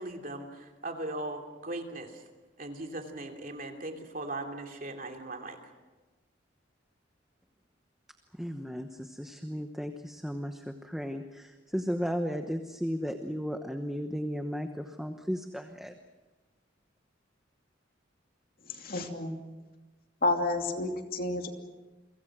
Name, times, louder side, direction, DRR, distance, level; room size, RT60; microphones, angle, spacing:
voice 1, 0.0-2.1 2.6-5.6, right 2 dB, 45° right, 3 dB, 3.0 m, -38 dB
voice 2, 8.3-15.9, equal, ahead, 5 dB, 1.0 m, -35 dB
voice 3, 18.8-19.4 20.2-21.5, left 2 dB, 50° left, 4 dB, 2.7 m, -30 dB
30.0 x 24.0 x 6.2 m, 1.2 s
head